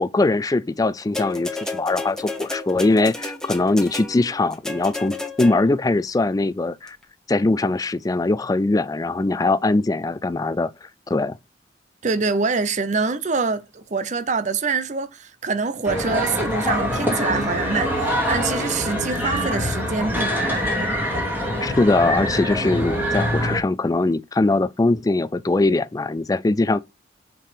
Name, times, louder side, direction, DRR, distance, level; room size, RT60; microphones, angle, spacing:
voice 1, 0.0-7.0 7.3-10.7 11.1-11.4 21.6-26.8, left 2 dB, 20° left, 0.4 m, -21 dB
sound 1, 1.1-5.9 6.9-7.0, left 2 dB, 5° left, 1.1 m, -32 dB
voice 2, 12.0-20.9, right 4 dB, 45° right, 0.6 m, -25 dB
sound 2, 15.8-23.6, equal, 10° right, 2.4 m, -24 dB
5.6 x 5.3 x 4.9 m
head